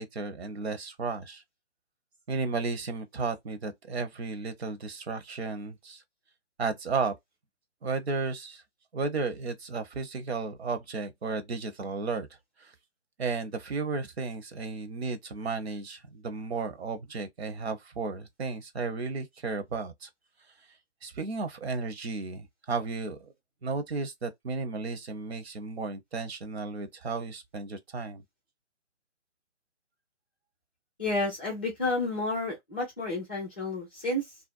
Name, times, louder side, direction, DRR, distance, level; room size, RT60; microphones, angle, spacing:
voice 1, 0.0-1.4 2.3-6.0 6.6-7.1 7.8-8.6 8.9-12.3 12.6-12.7 13.2-20.1 21.0-23.3 23.6-28.2, right 4 dB, 65° right, 0.8 m, -34 dB
voice 2, 31.0-34.4, left 2 dB, 10° left, 0.5 m, -31 dB
2.5 x 2.0 x 2.4 m
hypercardioid pair, 155°, 35 cm